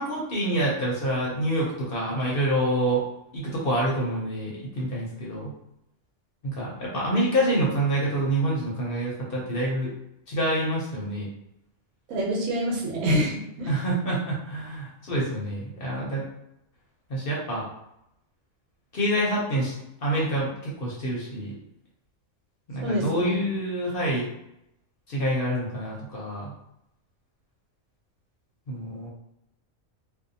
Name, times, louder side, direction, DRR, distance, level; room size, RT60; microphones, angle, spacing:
voice 1, 0.0-3.0 3.3-5.5 6.4-9.9 10.3-11.3 13.7-16.2 17.1-17.7 18.9-19.7 20.0-21.5 22.7-24.3 25.1-26.5 28.7-29.1, right 1 dB, 50° left, -5 dB, 0.8 m, -27 dB
voice 2, 12.1-13.7 22.8-23.4, equal, 80° right, -1 dB, 1.1 m, -26 dB
2.7 x 2.1 x 2.6 m, 0.81 s
omnidirectional pair, 1.4 m